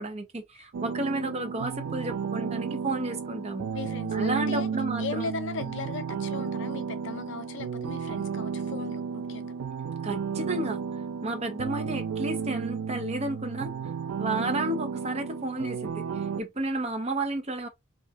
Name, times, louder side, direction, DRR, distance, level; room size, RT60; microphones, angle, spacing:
voice 1, 0.0-3.6 4.1-5.3 10.0-10.8 11.2-13.7 14.2-17.7, right 2 dB, 30° right, 0.7 m, -32 dB
sound 1, 0.7-16.4, right 6 dB, 90° right, 0.4 m, -33 dB
voice 2, 3.7-4.7 5.0-9.5, left 4 dB, 55° left, 0.5 m, -37 dB
3.5 x 2.5 x 2.3 m
head